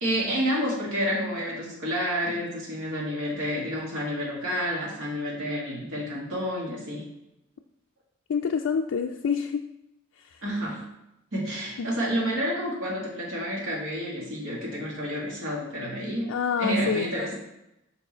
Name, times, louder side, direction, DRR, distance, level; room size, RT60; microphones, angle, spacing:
voice 1, 0.0-7.0 10.4-10.8 11.3-16.3 16.6-17.3, equal, 85° right, -4 dB, 2.1 m, -29 dB
voice 2, 8.3-9.6 11.8-11.9 16.3-17.1, left 6 dB, 80° left, 3 dB, 0.4 m, -27 dB
5.3 x 4.6 x 4.4 m, 0.86 s
head